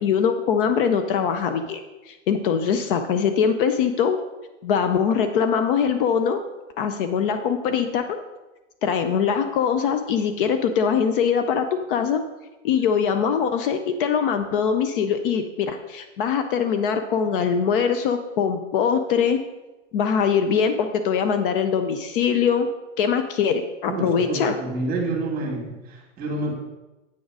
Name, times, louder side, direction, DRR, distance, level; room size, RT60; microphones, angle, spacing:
voice 1, 0.0-1.8 2.1-4.2 4.6-6.4 6.8-8.2 8.8-12.2 12.6-19.4 19.9-22.7 23.0-24.6, left 7 dB, 45° left, 8 dB, 0.6 m, -22 dB
voice 2, 23.9-26.5, right 2 dB, 25° right, 1 dB, 2.2 m, -28 dB
8.4 x 4.0 x 6.1 m, 1.1 s
hypercardioid pair, 130°, 38 cm